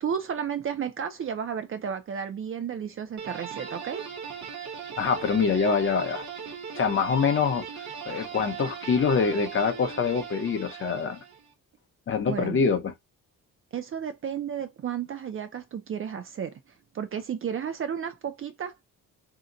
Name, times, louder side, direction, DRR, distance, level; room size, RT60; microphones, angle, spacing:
voice 1, 0.0-4.1 12.3-12.6 13.7-16.5 16.9-18.8, right 8 dB, 40° right, 0.5 m, -32 dB
sound 1, 3.2-11.5, right 6 dB, 60° right, 1.0 m, -39 dB
voice 2, 5.0-6.2 6.8-7.7 8.0-11.2 12.1-12.9, left 5 dB, 40° left, 0.7 m, -25 dB
2.8 x 2.1 x 3.7 m
cardioid pair, 145°, 33 cm